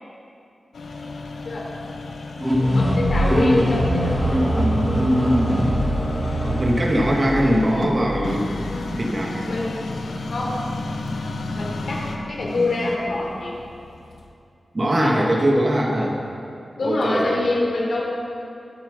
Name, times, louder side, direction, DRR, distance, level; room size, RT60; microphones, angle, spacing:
sound 1, 0.7-14.3, left 2 dB, 90° left, 1.3 m, -33 dB
sound 2, 2.4-9.0, equal, 10° right, 3.7 m, -22 dB
voice 1, 2.7-4.3 8.7-8.9 9.4-10.0 10.3-10.6 11.5-12.0 12.3-13.5 15.0-15.3 16.8-18.0, left 2 dB, 70° left, -4 dB, 4.3 m, -25 dB
voice 2, 6.4-8.5 9.0-9.5 14.7-16.2 16.8-17.3, equal, 35° right, -1 dB, 2.2 m, -21 dB
23.0 x 8.1 x 5.3 m, 2.5 s
wide cardioid pair, 85°, 0 cm